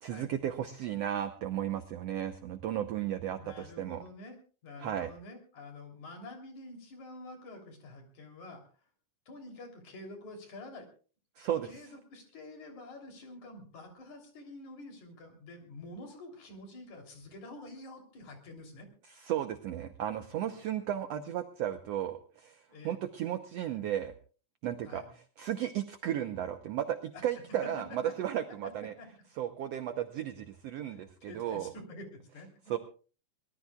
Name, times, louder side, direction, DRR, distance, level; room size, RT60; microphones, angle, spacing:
voice 1, 0.0-4.0 4.8-5.1 11.4-11.7 19.1-24.1 24.6-28.9 29.4-31.7 32.7-32.8, right 11 dB, 70° right, 8 dB, 1.6 m, -34 dB
voice 2, 3.3-8.6 9.3-10.9 11.6-18.9 20.5-20.8 22.7-23.0 24.8-25.1 27.6-27.7 28.0-28.1 29.0-29.1 30.9-32.7, left 2 dB, 60° left, 3 dB, 4.6 m, -48 dB
24.0 x 18.5 x 2.3 m, 0.38 s
omnidirectional pair, 3.7 m